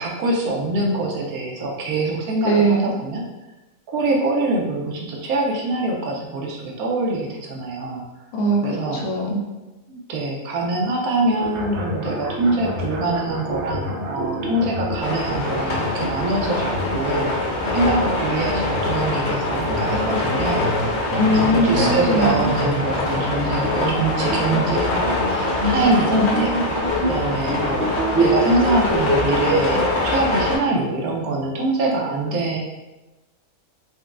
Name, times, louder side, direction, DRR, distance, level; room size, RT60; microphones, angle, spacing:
voice 1, 0.0-3.3 3.9-8.0 8.6-9.0 9.9-20.9 21.3-26.8 27.1-32.6, right 2 dB, 90° right, 0 dB, 1.1 m, -24 dB
voice 2, 2.4-2.9 8.3-9.4 21.2-22.5, right 1 dB, 80° left, -2 dB, 1.1 m, -20 dB
sound 1, 11.4-29.9, right 1 dB, 60° right, 0.9 m, -27 dB
sound 2, 15.0-30.6, left 2 dB, 60° left, 0.9 m, -24 dB
4.1 x 2.2 x 2.4 m, 1.1 s
omnidirectional pair, 1.5 m